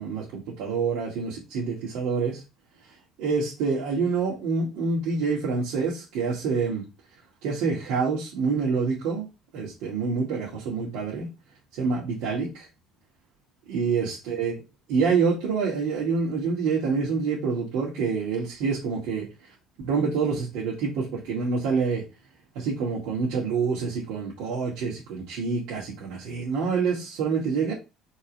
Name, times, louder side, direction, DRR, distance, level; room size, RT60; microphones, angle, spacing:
voice 1, 0.0-2.4 3.2-6.9 7.4-9.3 9.5-11.3 11.7-12.7 13.7-14.5 14.9-19.3 19.8-22.0 22.5-27.7, right 5 dB, 75° right, -6 dB, 2.3 m, -27 dB
4.6 x 4.1 x 5.3 m, 0.27 s
cardioid pair, 180°, 0 cm